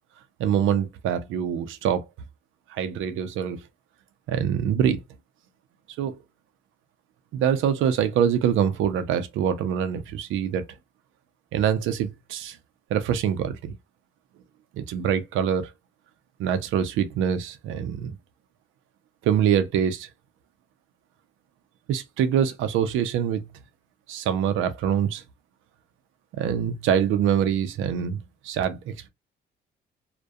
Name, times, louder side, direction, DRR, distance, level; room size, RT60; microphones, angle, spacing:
voice 1, 0.4-2.0 2.7-3.6 4.3-5.0 6.0-6.2 7.3-10.7 11.5-12.6 12.9-13.7 14.8-15.7 16.4-18.2 19.2-20.1 21.9-23.4 24.1-25.2 26.3-29.1, right 8 dB, 85° right, 0.5 m, -24 dB
2.3 x 2.2 x 2.5 m
cardioid pair, 90°, 20 cm